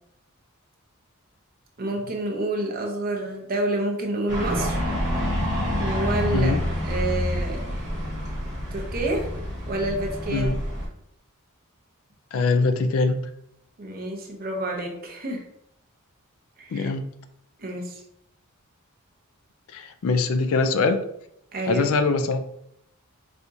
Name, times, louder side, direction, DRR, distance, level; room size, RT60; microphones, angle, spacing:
voice 1, 1.8-4.8 5.8-7.6 8.7-9.3 9.7-10.5 13.8-15.5 16.6-16.9 17.6-18.0 21.5-21.9, right 2 dB, 45° right, 2 dB, 0.7 m, -28 dB
sound 1, 4.3-10.9, equal, 15° right, 1.1 m, -27 dB
voice 2, 12.3-13.2 16.7-17.1 19.7-21.0 21.7-22.4, left 3 dB, 70° left, 9 dB, 0.4 m, -22 dB
4.2 x 2.3 x 2.6 m, 0.73 s
head